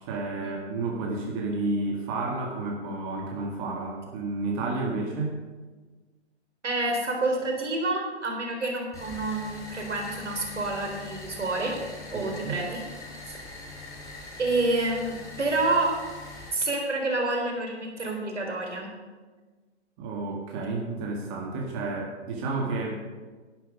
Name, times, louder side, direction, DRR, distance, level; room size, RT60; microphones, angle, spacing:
voice 1, 0.1-5.4 12.1-12.6 20.0-23.0, right 3 dB, 25° right, 0 dB, 1.9 m, -31 dB
voice 2, 6.6-11.8 12.1-12.8 13.2-13.4 14.4-16.0 16.5-18.9, right 2 dB, 80° right, 1 dB, 4.1 m, -28 dB
sound 1, 8.9-16.5, left 3 dB, 10° left, 4.0 m, -42 dB
11.5 x 11.0 x 5.4 m, 1.3 s
hypercardioid pair, 140°, 35 cm